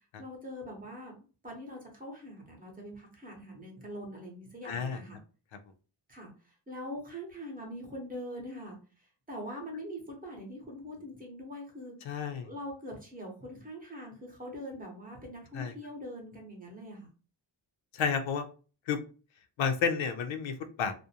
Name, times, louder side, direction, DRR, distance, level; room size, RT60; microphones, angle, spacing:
voice 1, 0.2-1.2 1.4-5.2 6.1-12.1 12.4-17.1, equal, 20° right, -1 dB, 0.8 m, -43 dB
voice 2, 4.6-5.0 12.0-12.5 15.5-15.7 17.9-18.4 18.9-19.0 19.6-20.9, left 6 dB, 85° left, 7 dB, 0.6 m, -31 dB
2.5 x 2.0 x 2.7 m, 0.36 s
wide cardioid pair, 145°, 45 cm